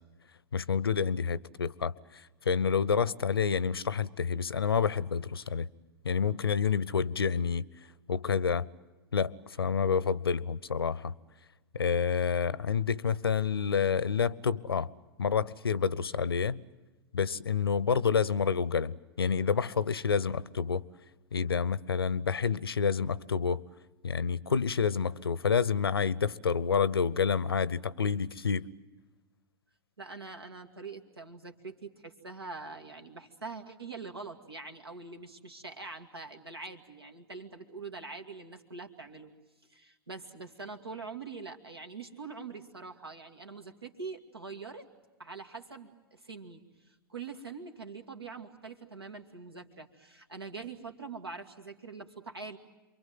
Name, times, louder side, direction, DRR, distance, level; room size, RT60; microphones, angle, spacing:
voice 1, 0.5-5.7 6.0-7.7 8.1-8.7 9.1-11.1 11.7-14.9 15.2-16.6 17.1-20.8 21.3-23.6 24.0-28.7, left 6 dB, 75° left, 0.8 m, -28 dB
voice 2, 30.0-39.3 39.7-44.9 45.2-46.6 46.9-52.6, right 4 dB, 80° right, 2.5 m, -44 dB
28.5 x 23.0 x 7.8 m
figure-of-eight pair, 100°, 13 cm